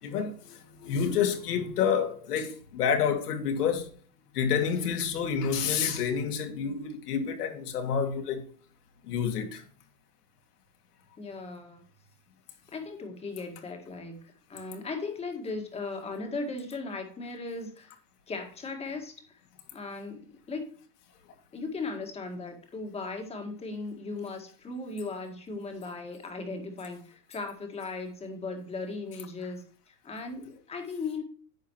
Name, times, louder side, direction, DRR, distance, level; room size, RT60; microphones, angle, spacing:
voice 1, 0.0-3.9 4.3-8.5 9.0-9.6, left 7 dB, 70° left, 2.6 m, -28 dB
voice 2, 11.2-11.8 12.7-14.2 14.5-17.9 18.3-19.4 19.7-20.7 21.5-31.2, left 3 dB, 15° left, 1.8 m, -37 dB
10.5 x 7.5 x 3.1 m
hypercardioid pair, 140°, 47 cm